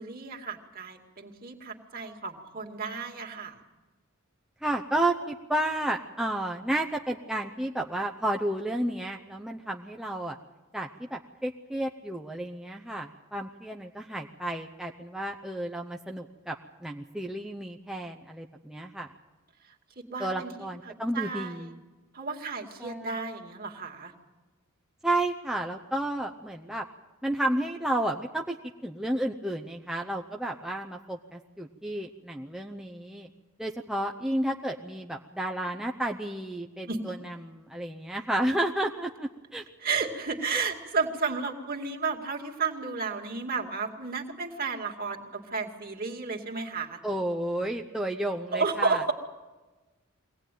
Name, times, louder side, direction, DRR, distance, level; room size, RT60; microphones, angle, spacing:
voice 1, 0.0-3.5 20.0-21.7 22.1-24.1 36.9-37.0 39.8-47.0 48.5-49.1, right 4 dB, 45° right, 2 dB, 2.3 m, -32 dB
voice 2, 4.6-10.4 10.7-16.5 16.8-19.1 20.2-21.8 22.8-23.1 25.0-26.8 27.2-28.6 28.8-33.3 33.6-39.6 40.5-40.6 47.0-49.0, right 1 dB, 5° right, 1 dB, 0.7 m, -32 dB
23.0 x 18.0 x 9.2 m, 1.2 s
head